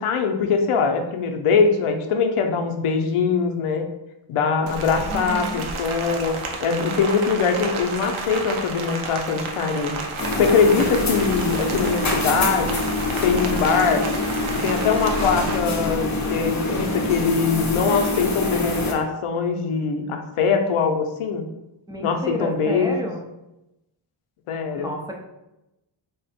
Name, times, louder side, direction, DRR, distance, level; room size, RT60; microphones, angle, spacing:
voice 1, 0.0-3.9 4.3-9.9 10.4-12.8 13.2-14.1 14.5-21.4 22.0-22.9 24.5-24.9, left 5 dB, 80° left, 5 dB, 0.6 m, -22 dB
Rain, 4.7-15.6, right 3 dB, 70° right, 0.7 m, -31 dB
voice 2, 5.1-5.7 21.9-23.2 24.8-25.1, equal, 10° right, 0 dB, 0.6 m, -30 dB
sound 1, 10.2-18.9, left 2 dB, 35° left, 0.7 m, -25 dB
3.5 x 2.1 x 4.1 m, 0.92 s
cardioid pair, 85°, 50 cm